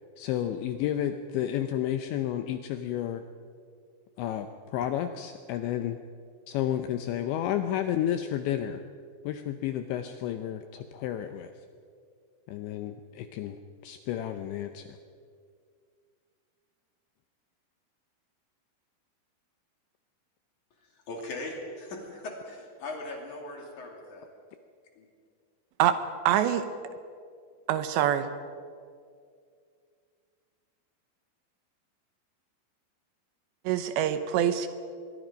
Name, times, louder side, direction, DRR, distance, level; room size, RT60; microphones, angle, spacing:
voice 1, 0.2-3.2 4.2-6.0 6.5-8.8 9.2-11.5 12.5-15.0, left 11 dB, 80° left, 8 dB, 2.6 m, -31 dB
voice 2, 20.8-24.3 25.0-25.1, left 2 dB, 45° left, 1 dB, 3.3 m, -39 dB
voice 3, 26.3-26.7 27.7-28.2 33.7-34.7, right 10 dB, 75° right, 10 dB, 2.7 m, -24 dB
24.5 x 22.0 x 5.2 m, 2.2 s
omnidirectional pair, 5.9 m